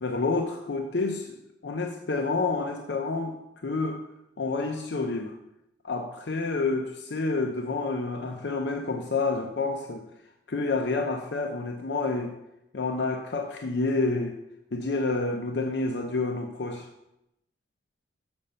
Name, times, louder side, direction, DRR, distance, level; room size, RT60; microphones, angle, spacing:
voice 1, 0.0-1.4 1.6-3.3 3.6-4.0 4.4-5.4 5.8-10.1 10.5-12.3 12.7-14.4 14.7-16.9, left 3 dB, 65° left, 3 dB, 0.6 m, -29 dB
7.1 x 5.2 x 6.6 m, 0.86 s
head